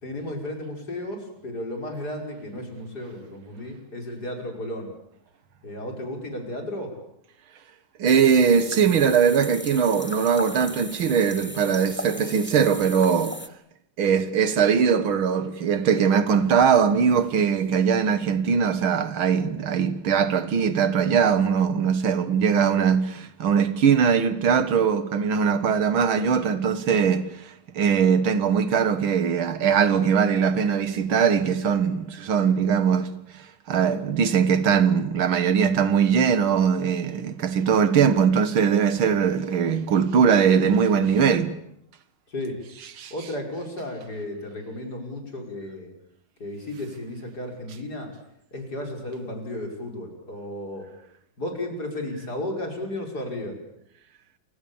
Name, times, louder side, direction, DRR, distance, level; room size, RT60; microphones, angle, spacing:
voice 1, 0.0-4.9 5.6-6.9 42.3-42.6 43.1-45.9 46.4-48.1 48.5-50.9 51.4-53.6, left 1 dB, 50° left, 6.1 m, -34 dB
voice 2, 8.0-13.4 14.0-41.6 43.0-43.1, right 7 dB, 80° right, 2.3 m, -21 dB
sound 1, 8.1-13.5, left 1 dB, 10° left, 0.7 m, -37 dB
29.0 x 25.5 x 7.1 m
omnidirectional pair, 2.2 m